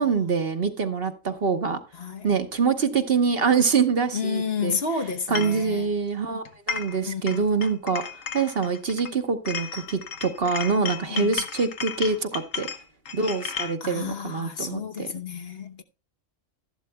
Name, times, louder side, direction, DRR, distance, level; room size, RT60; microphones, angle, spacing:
voice 1, 0.0-1.8 2.2-4.8 5.3-12.7 13.1-15.1, right 5 dB, 50° right, 1.2 m, -25 dB
voice 2, 4.1-5.9 7.0-7.4 10.8-11.4 13.8-15.8, left 5 dB, 55° left, 1.1 m, -31 dB
sound 1, 5.4-5.6 6.5-7.0 7.3-9.1 9.5-13.8, left 7 dB, 80° left, 1.4 m, -34 dB
13.5 x 11.5 x 2.2 m
omnidirectional pair, 1.3 m